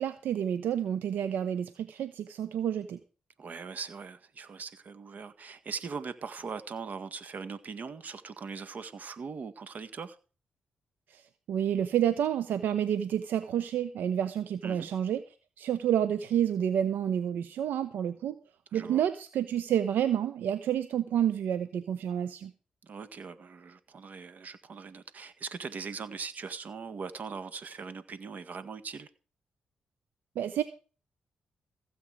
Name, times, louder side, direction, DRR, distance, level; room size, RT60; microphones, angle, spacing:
voice 1, 0.0-3.0 11.1-11.2 11.5-15.2 15.6-18.4 18.7-22.5 30.4-30.6, right 9 dB, 85° right, 12 dB, 0.9 m, -29 dB
voice 2, 3.4-10.2 14.6-14.9 18.7-19.0 22.8-29.1, right 5 dB, 60° right, 13 dB, 1.7 m, -40 dB
15.5 x 8.3 x 4.9 m, 0.36 s
cardioid pair, 60°, 3 cm